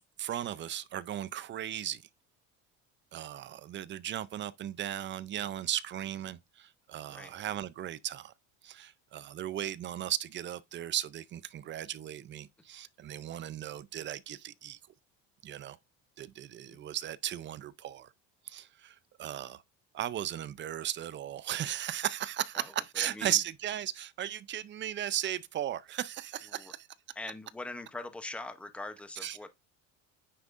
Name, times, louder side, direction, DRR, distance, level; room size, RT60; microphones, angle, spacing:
voice 1, 0.2-2.0 3.1-8.3 8.6-14.8 15.4-15.8 16.2-18.1 18.5-19.6 19.9-26.9 29.2-29.5, right 11 dB, 35° right, 0.5 m, -36 dB
voice 2, 22.5-23.4 26.5-26.7 27.1-29.5, left 2 dB, 5° left, 0.7 m, -42 dB
9.3 x 6.0 x 2.5 m
cardioid pair, 120°, 33 cm